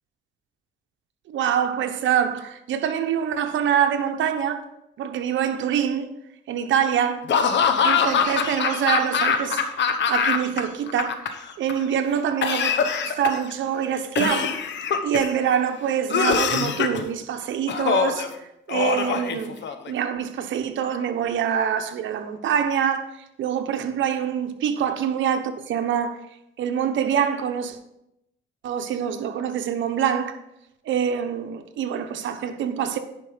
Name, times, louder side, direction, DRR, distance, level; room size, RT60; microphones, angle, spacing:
voice 1, 1.3-4.6 5.0-6.1 6.5-7.3 7.8-9.6 10.1-12.7 13.0-14.6 15.0-19.6 19.9-26.2 26.6-27.8 28.6-30.4 30.8-33.0, right 8 dB, 75° right, 1.0 m, -25 dB
Laughter / Cough, 7.3-10.6 10.9-11.7 12.4-13.5 14.2-15.4 16.1-17.0 17.7-18.3 18.7-19.9, left 6 dB, 65° left, 1.0 m, -23 dB
10.5 x 5.3 x 5.1 m
cardioid pair, 90°, 20 cm